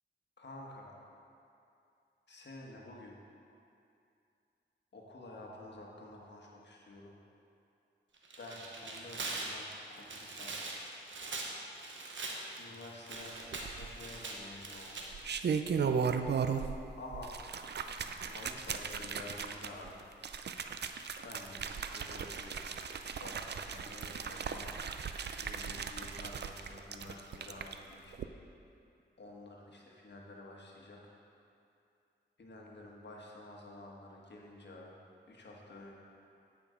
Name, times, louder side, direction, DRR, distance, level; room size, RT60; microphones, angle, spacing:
voice 1, 0.4-0.9 2.3-3.2 4.9-7.1 8.4-10.6 12.6-15.0 17.0-17.3 18.3-20.0 21.2-22.7 23.2-24.8 25.4-28.2 29.2-31.1 32.4-35.0 35.3-36.0, left 2 dB, 65° left, -2 dB, 1.4 m, -50 dB
Tearing, 8.2-15.1, right 3 dB, 75° right, 1.0 m, -42 dB
sound 1, 13.5-14.2 15.0-16.8 17.1-27.7 28.1-28.2, right 6 dB, 60° right, 0.5 m, -37 dB
9.1 x 5.2 x 5.0 m, 2.6 s
cardioid pair, 45°, 20 cm